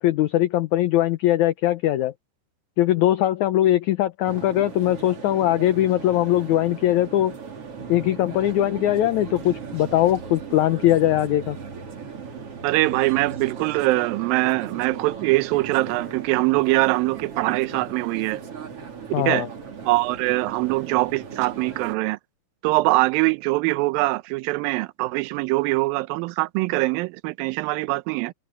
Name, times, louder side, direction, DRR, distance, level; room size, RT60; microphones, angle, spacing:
voice 1, 0.0-2.1 2.8-7.3 7.9-11.6 19.1-19.5, left 13 dB, 70° left, 1.9 m, -21 dB
sound 1, 4.2-21.9, right 6 dB, 40° right, 3.4 m, -37 dB
voice 2, 12.6-18.4 19.2-19.5 19.9-22.2 22.6-28.3, right 21 dB, 85° right, 2.4 m, -23 dB
omnidirectional pair, 4.1 m